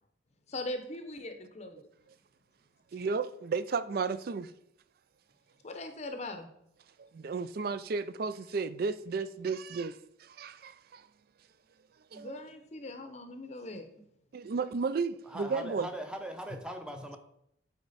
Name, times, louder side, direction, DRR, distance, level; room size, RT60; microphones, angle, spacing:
voice 1, 0.5-1.9 5.6-6.5 12.1-13.9, left 1 dB, 35° left, 0.7 m, -40 dB
voice 2, 2.9-4.5 7.0-11.1 12.1-12.4 14.3-15.9, right 4 dB, 50° right, 0.4 m, -33 dB
voice 3, 15.3-17.2, right 1 dB, 5° right, 0.7 m, -40 dB
8.2 x 4.6 x 4.1 m
head